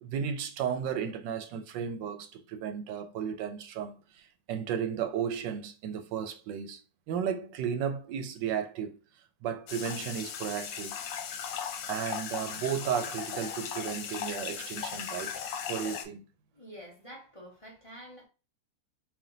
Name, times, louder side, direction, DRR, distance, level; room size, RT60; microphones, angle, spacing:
voice 1, 0.0-6.8 7.1-9.0 9.4-11.0 11.9-15.3 15.7-16.3, right 8 dB, 80° right, 1.3 m, -34 dB
sound 1, 9.7-16.0, left 8 dB, 80° left, 1.3 m, -37 dB
voice 2, 16.5-18.3, equal, 20° left, 1.0 m, -48 dB
3.4 x 2.8 x 3.8 m
omnidirectional pair, 2.0 m